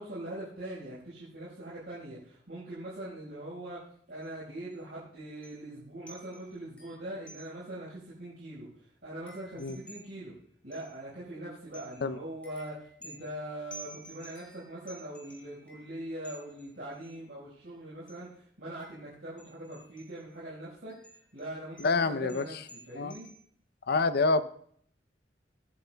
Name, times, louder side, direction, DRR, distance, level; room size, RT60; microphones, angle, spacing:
voice 1, 0.0-3.8 4.1-10.3 10.6-20.9 21.3-23.3, right 1 dB, 65° right, -8 dB, 4.9 m, -42 dB
sound 1, 4.2-4.4 4.7-4.8 5.4-5.8 6.1-7.8 8.2-8.3 8.6-11.3 11.7-17.1 18.1-18.3 18.8-20.4 20.9-23.4, right 1 dB, 10° left, 3.7 m, -53 dB
voice 2, 21.8-22.4 23.0-23.1 23.9-24.4, left 3 dB, 60° left, 13 dB, 0.6 m, -27 dB
23.5 x 10.5 x 2.3 m, 0.63 s
head